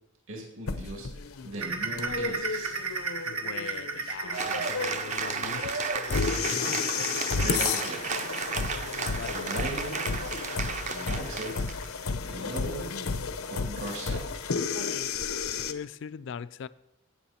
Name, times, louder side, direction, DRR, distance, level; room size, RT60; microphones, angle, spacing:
voice 1, 0.3-1.1 1.4-2.7 6.0-7.1 7.4-8.2 8.6-9.0 9.3-10.1 10.9-11.7 12.2-12.8 13.5-14.2, right 1 dB, 65° right, 2.4 m, -38 dB
sound 1, 0.7-15.7, left 5 dB, 80° left, 0.7 m, -32 dB
sound 2, 1.6-12.9 13.3-13.5 13.9-14.0 14.5-14.6, right 4 dB, 85° right, 1.3 m, -37 dB
voice 2, 3.3-5.9 9.2-9.4 15.7-16.7, left 7 dB, 55° left, 0.3 m, -40 dB
Cheering / Applause, 4.3-11.9, right 5 dB, 35° right, 0.6 m, -33 dB
17.0 x 6.4 x 4.3 m
head